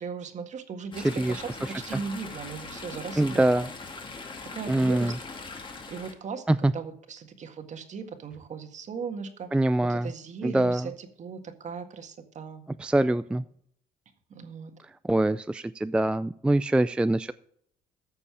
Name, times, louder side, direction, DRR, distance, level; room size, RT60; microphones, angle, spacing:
voice 1, 0.0-3.7 4.5-5.2 5.9-6.5 6.7-9.5 9.8-12.6 14.3-14.8, right 5 dB, 45° right, 7 dB, 1.8 m, -38 dB
Chatter / Stream, 0.9-6.1, left 4 dB, 30° left, 2.3 m, -41 dB
voice 2, 3.2-3.7 4.7-5.2 6.5-6.7 9.5-10.1 10.4-10.9 12.8-13.4 15.0-17.3, right 1 dB, 5° right, 13 dB, 0.3 m, -24 dB
14.0 x 6.9 x 4.8 m, 0.68 s
cardioid pair, 110°, 17 cm